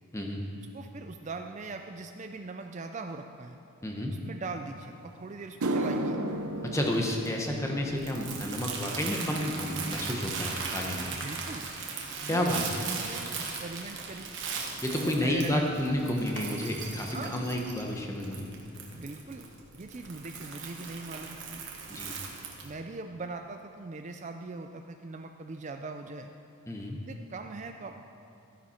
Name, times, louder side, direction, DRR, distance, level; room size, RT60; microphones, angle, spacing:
voice 1, 0.7-3.6 4.2-6.2 11.1-11.7 12.2-14.3 15.0-15.6 17.1-17.4 18.9-19.5 19.8-21.6 22.1-22.2 22.6-26.3 27.1-27.9, right 3 dB, 35° right, 5 dB, 0.4 m, -41 dB
voice 2, 3.8-4.1 6.7-11.1 12.3-12.8 14.8-18.5 21.9-22.2 26.7-27.0, left 1 dB, 15° left, 1 dB, 1.0 m, -30 dB
sound 1, 4.9-5.0 5.4-13.9 14.2-14.6 15.4-15.5 18.2-18.3 20.0-20.1 20.3-20.5 20.8-21.3 21.7-21.8 22.3-22.4, right 1 dB, 90° right, 0.7 m, -38 dB
Crumpling crinkling, 6.3-22.7, right 5 dB, 55° right, 1.5 m, -39 dB
14.0 x 10.5 x 4.3 m, 2.8 s
head